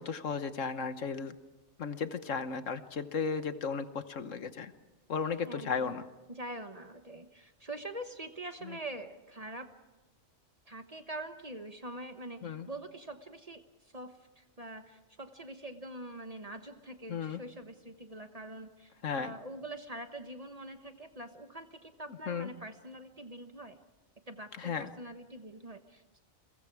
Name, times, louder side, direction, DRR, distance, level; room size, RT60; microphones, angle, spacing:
voice 1, 0.0-1.4 1.8-4.7 5.1-6.0 8.6-8.8 12.4-12.7 17.1-17.4 19.0-19.3 22.3-22.5 24.6-24.9, left 5 dB, 70° left, 10 dB, 1.4 m, -35 dB
voice 2, 5.4-6.0 6.3-9.7 10.7-23.8 24.3-26.2, right 1 dB, 30° right, 7 dB, 1.2 m, -44 dB
30.0 x 22.5 x 4.8 m, 1.2 s
omnidirectional pair, 1.4 m